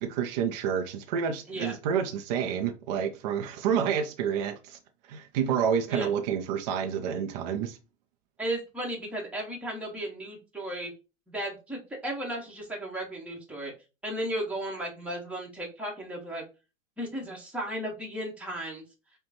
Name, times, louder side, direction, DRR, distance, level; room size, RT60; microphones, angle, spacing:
voice 1, 0.0-4.8 5.1-7.8, right 7 dB, 35° right, 0.4 m, -29 dB
voice 2, 8.4-10.9 11.3-13.7 14.0-16.4 17.0-18.8, right 1 dB, 5° right, 1.1 m, -35 dB
5.0 x 2.2 x 2.8 m
hypercardioid pair, 115°, 39 cm